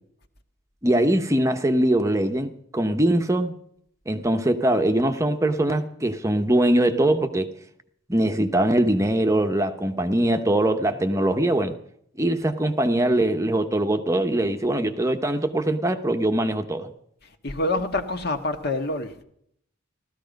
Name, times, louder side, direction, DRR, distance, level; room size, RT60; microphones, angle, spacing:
voice 1, 0.8-3.5 4.1-7.5 8.1-11.8 12.2-16.9, right 1 dB, 15° right, 0.9 m, -22 dB
voice 2, 17.4-19.2, left 2 dB, 50° left, 1.5 m, -26 dB
16.0 x 13.5 x 5.2 m
head